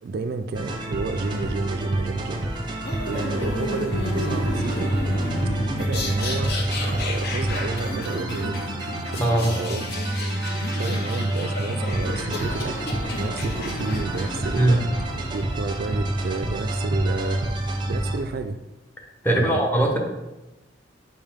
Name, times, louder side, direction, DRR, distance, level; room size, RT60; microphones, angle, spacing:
voice 1, 0.0-2.4 3.0-4.9 5.8-8.6 9.1-9.9 10.7-18.6 19.3-19.6, right 3 dB, 55° right, 8 dB, 0.3 m, -31 dB
sound 1, 0.5-18.2, right 1 dB, 25° right, 0.7 m, -28 dB
sound 2, 2.8-15.6, left 1 dB, 55° left, 0.8 m, -32 dB
sound 3, 12.4-16.6 18.9-19.0, equal, 90° left, 1.9 m, -46 dB
voice 2, 19.2-20.0, right 1 dB, 10° left, -1 dB, 1.0 m, -20 dB
5.4 x 5.4 x 3.5 m, 1.0 s
head